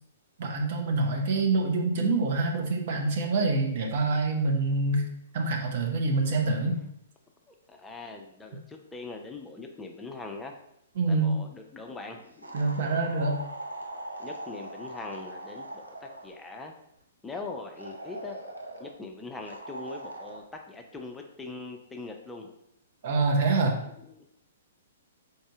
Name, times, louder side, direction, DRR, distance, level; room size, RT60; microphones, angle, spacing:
voice 1, 0.4-5.1 5.3-6.8 11.0-11.4 12.5-13.4 23.0-23.8, right 3 dB, 50° right, 2 dB, 0.8 m, -26 dB
voice 2, 7.5-10.5 11.1-12.6 14.2-16.7 17.2-18.4 18.8-22.5 24.0-24.3, left 3 dB, 10° left, 2 dB, 0.4 m, -41 dB
sound 1, 12.4-16.4 17.8-18.9 19.5-20.4, right 1 dB, 90° right, 0.6 m, -41 dB
4.1 x 2.6 x 4.6 m, 0.77 s
figure-of-eight pair, 120°, 0 cm